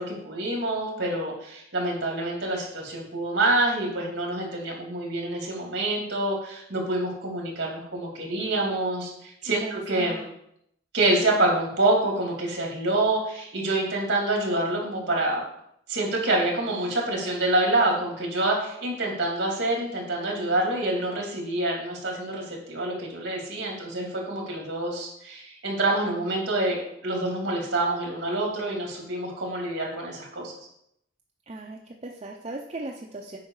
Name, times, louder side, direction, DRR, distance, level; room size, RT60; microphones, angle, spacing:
voice 1, 0.0-10.2 10.9-15.4 15.9-30.5, right 2 dB, 55° right, -1 dB, 2.7 m, -27 dB
voice 2, 9.5-10.3 31.5-33.4, right 2 dB, 30° right, 0 dB, 0.6 m, -38 dB
8.4 x 5.4 x 4.8 m, 0.76 s
head